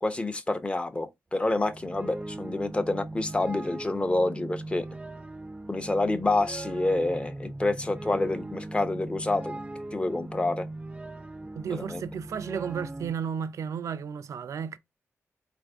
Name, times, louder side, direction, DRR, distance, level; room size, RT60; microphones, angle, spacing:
voice 1, 0.0-4.9 5.7-9.6 9.9-10.7 11.7-12.0, left 2 dB, 20° left, 0.6 m, -28 dB
sound 1, 1.4-13.1, right 2 dB, 20° right, 0.4 m, -39 dB
voice 2, 11.6-14.8, right 7 dB, 80° right, 0.4 m, -33 dB
4.2 x 2.5 x 3.4 m
wide cardioid pair, 90°, 5 cm